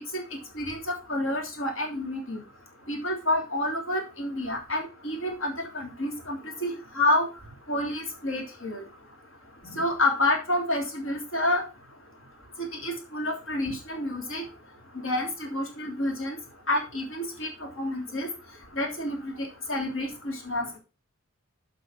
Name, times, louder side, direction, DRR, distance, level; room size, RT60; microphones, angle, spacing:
voice 1, 0.6-2.4 2.9-7.3 7.7-8.8 9.7-11.6 12.8-14.4 15.0-16.3 16.7-17.5 17.8-18.3 18.8-19.3 19.7-20.8, left 1 dB, 65° left, 2 dB, 3.3 m, -28 dB
7.9 x 5.8 x 6.1 m, 0.31 s
head